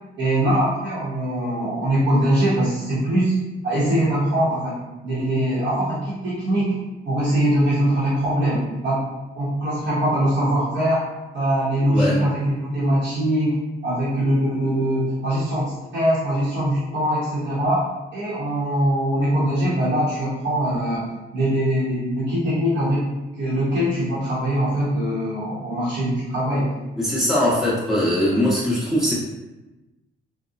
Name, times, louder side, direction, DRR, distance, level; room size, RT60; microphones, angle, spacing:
voice 1, 0.2-3.3 3.6-4.8 5.0-6.8 7.0-9.1 9.3-11.1 11.3-13.6 13.8-17.8 18.1-21.1 21.3-23.1 23.4-26.7, right 1 dB, 70° right, -10 dB, 1.0 m, -22 dB
voice 2, 27.0-29.1, left 1 dB, ahead, -8 dB, 1.1 m, -21 dB
2.8 x 2.1 x 2.4 m, 1.1 s
cardioid pair, 90°, 20 cm